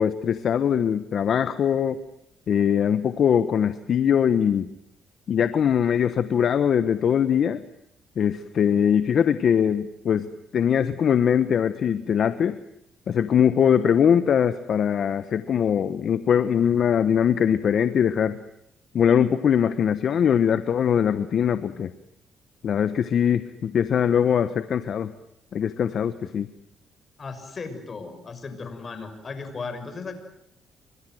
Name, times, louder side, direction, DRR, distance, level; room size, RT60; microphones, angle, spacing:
voice 1, 0.0-2.0 2.5-4.7 5.3-7.6 8.2-10.3 10.5-12.6 13.1-18.4 18.9-21.9 22.6-25.1 25.5-26.5, left 8 dB, 60° left, 12 dB, 1.2 m, -22 dB
voice 2, 27.2-30.1, left 4 dB, 40° left, 9 dB, 6.5 m, -36 dB
29.0 x 25.0 x 7.9 m, 0.75 s
cardioid pair, 90°, 0 cm